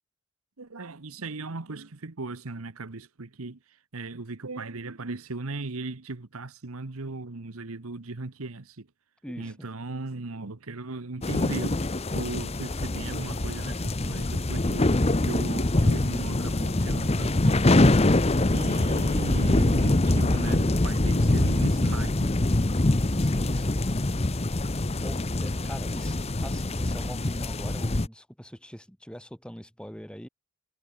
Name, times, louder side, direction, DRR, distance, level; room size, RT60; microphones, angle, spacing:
voice 1, 0.6-8.9 9.4-11.9 12.1-14.9 15.2-18.1 18.5-22.3, right 3 dB, 75° right, 1.2 m, -37 dB
voice 2, 9.2-9.7 23.2-23.9 25.0-30.3, equal, 5° left, 3.2 m, -42 dB
sound 1, 11.2-28.1, left 2 dB, 30° left, 0.9 m, -24 dB
head